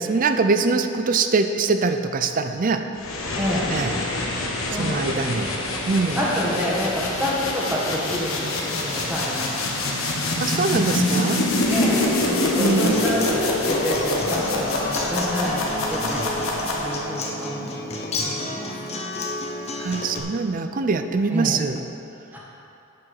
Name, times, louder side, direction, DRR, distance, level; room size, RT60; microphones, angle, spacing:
voice 1, 0.0-2.8 3.7-4.0 4.8-5.5 5.9-6.2 10.4-11.4 12.6-12.9 19.8-21.8, right 4 dB, 40° right, 8 dB, 0.5 m, -23 dB
sound 1, 3.0-17.3, left 2 dB, 80° left, 1.3 m, -25 dB
voice 2, 3.3-3.7 4.7-5.5 6.1-9.6 10.8-11.2 11.7-17.8 18.2-19.0 21.3-21.6 22.3-22.4, equal, 10° right, -5 dB, 1.6 m, -28 dB
Acoustic guitar, 12.2-20.2, left 2 dB, 30° left, 0.9 m, -31 dB
7.5 x 6.1 x 6.5 m, 2.7 s
head